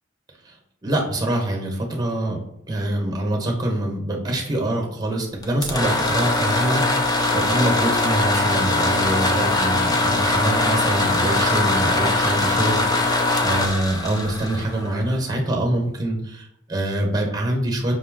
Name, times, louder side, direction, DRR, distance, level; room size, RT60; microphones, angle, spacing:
voice 1, 0.8-2.4 2.7-17.9, right 1 dB, 20° right, 1 dB, 0.9 m, -25 dB
sound 1, 5.4-15.2, left 2 dB, 20° left, 0.5 m, -21 dB
5.3 x 2.1 x 3.6 m, 0.81 s
head